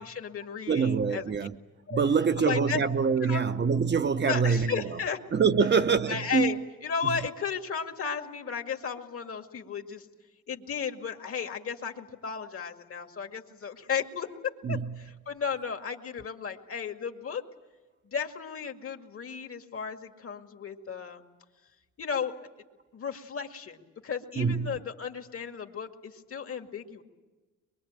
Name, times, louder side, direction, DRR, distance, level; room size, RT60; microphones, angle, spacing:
voice 1, 0.0-1.2 1.9-2.0 2.4-2.8 3.2-3.4 4.3-5.2 6.1-10.1 10.5-17.4 18.0-21.2 22.0-22.3 22.9-27.0, left 6 dB, 50° left, 2.2 m, -34 dB
voice 2, 0.7-1.5 1.9-5.0 5.3-6.5 7.0-7.2 14.6-15.1 24.4-24.8, right 5 dB, 35° right, 0.9 m, -25 dB
23.5 x 23.0 x 8.9 m
cardioid pair, 90°, 30 cm